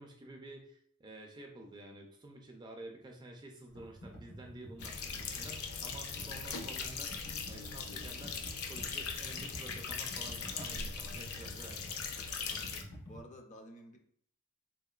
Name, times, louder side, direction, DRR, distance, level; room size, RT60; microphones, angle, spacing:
voice 1, 0.0-8.4 8.7-12.0, right 1 dB, 20° right, 2 dB, 0.4 m, -50 dB
Computer keyboard, 3.7-13.2, equal, 75° left, 1.1 m, -50 dB
sound 1, 4.8-12.8, left 5 dB, 90° left, 0.5 m, -40 dB
voice 2, 12.5-14.0, equal, 35° left, 3 dB, 0.5 m, -53 dB
3.8 x 2.8 x 2.3 m, 0.64 s
head